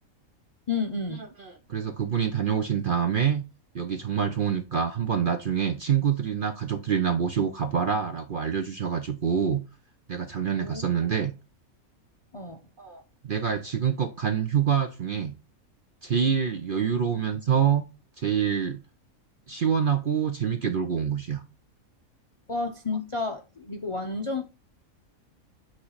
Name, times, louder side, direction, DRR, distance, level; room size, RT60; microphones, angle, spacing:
voice 1, 0.7-1.3 10.6-10.8 12.3-12.6 22.5-24.4, left 3 dB, 40° left, 0.5 m, -31 dB
voice 2, 1.4-3.4 3.7-9.6 10.1-11.3 12.8-15.3 16.0-17.8 18.2-18.8 19.5-21.4, right 7 dB, 55° right, 0.6 m, -26 dB
8.6 x 3.2 x 3.9 m
omnidirectional pair, 1.5 m